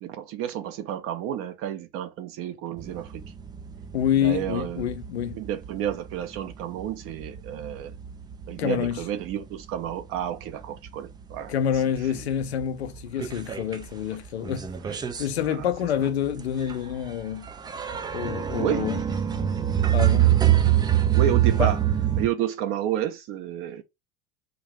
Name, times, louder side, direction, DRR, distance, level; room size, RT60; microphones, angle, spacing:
voice 1, 0.0-3.2 4.2-4.8 5.3-7.9 8.5-11.5 13.2-13.3 14.8-15.0 15.4-15.7 18.6-18.8 21.1-21.8 22.2-23.8, right 10 dB, 40° right, 0.8 m, -31 dB
sound 1, 2.8-9.4 9.8-10.9 11.3-11.4 11.7-11.8 12.1-13.9 14.2-22.3, right 11 dB, 15° right, 0.4 m, -26 dB
voice 2, 3.9-5.4 8.6-9.0 11.5-14.7 15.2-17.5 18.1-19.0 19.9-20.4 21.6-21.7, left 9 dB, 70° left, 0.7 m, -27 dB
3.8 x 2.7 x 3.4 m
figure-of-eight pair, 75°, 33 cm